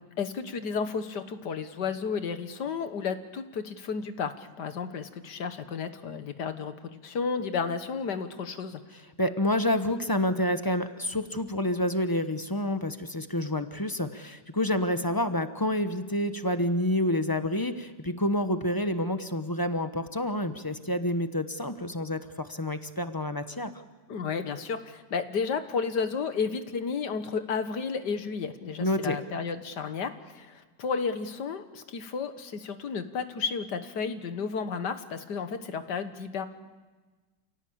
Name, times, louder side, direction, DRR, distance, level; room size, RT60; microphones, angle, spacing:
voice 1, 0.2-8.8 24.1-36.5, left 5 dB, 70° left, 9 dB, 1.9 m, -32 dB
voice 2, 9.2-23.7 28.8-29.2, left 1 dB, 15° left, 9 dB, 0.9 m, -28 dB
28.5 x 17.5 x 8.7 m, 1.3 s
omnidirectional pair, 1.9 m